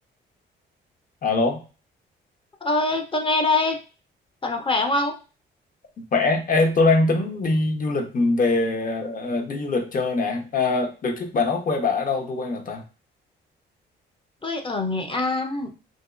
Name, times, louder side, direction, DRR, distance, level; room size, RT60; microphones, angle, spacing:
voice 1, 1.2-1.6 6.1-12.8, left 3 dB, 45° left, 4 dB, 0.9 m, -23 dB
voice 2, 2.6-3.8 4.4-5.2 14.4-15.7, left 2 dB, 25° left, 4 dB, 0.7 m, -24 dB
2.9 x 2.7 x 2.5 m, 0.34 s
cardioid pair, 90°, 20 cm